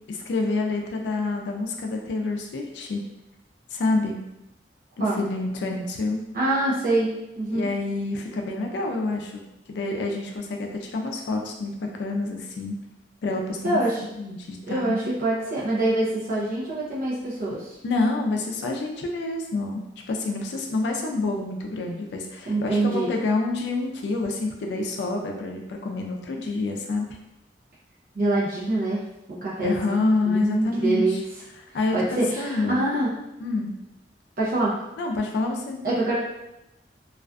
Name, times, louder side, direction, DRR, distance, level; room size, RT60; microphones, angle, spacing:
voice 1, 0.1-3.0 3.7-4.2 5.0-6.2 7.5-9.4 9.7-12.7 13.2-13.8 14.2-14.9 17.8-19.8 20.1-27.1 29.6-31.2 31.7-32.8 33.4-33.7 35.0-35.8, left 3 dB, 75° left, 2 dB, 0.3 m, -27 dB
voice 2, 6.3-7.1 7.4-7.7 13.6-14.0 14.7-17.8 22.5-23.1 28.2-29.0 29.3-31.2 31.9-33.1 34.4-34.7 35.8-36.1, right 2 dB, 55° right, -7 dB, 0.5 m, -25 dB
2.4 x 2.4 x 2.2 m, 0.91 s
head